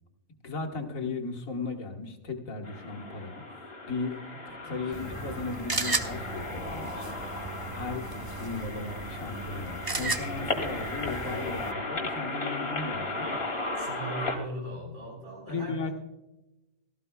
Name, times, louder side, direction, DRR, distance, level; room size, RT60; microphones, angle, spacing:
voice 1, 0.4-4.2 4.5-7.1 7.4-13.4 15.5-15.9, left 4 dB, 90° left, 3 dB, 1.8 m, -36 dB
sound 1, 2.6-14.4, left 2 dB, 50° left, 2.1 m, -36 dB
voice 2, 4.6-5.2 13.8-15.9, right 1 dB, 60° right, -3 dB, 5.5 m, -40 dB
sound 2, 4.9-11.7, right 3 dB, 25° right, 0.5 m, -35 dB
17.0 x 14.0 x 2.3 m, 0.97 s
omnidirectional pair, 1.4 m